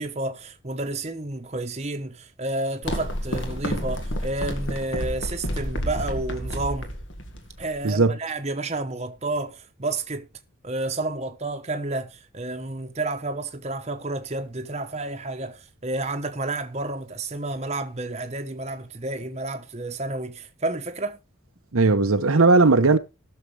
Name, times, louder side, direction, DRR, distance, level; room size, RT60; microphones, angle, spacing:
voice 1, 0.0-6.9 7.6-10.3 10.6-21.2, right 2 dB, 30° right, 1.1 m, -30 dB
sound 1, 2.8-7.9, equal, 60° left, 2.0 m, -30 dB
voice 2, 7.8-8.2 21.7-23.0, right 3 dB, 80° right, 0.9 m, -17 dB
19.0 x 6.6 x 3.3 m
head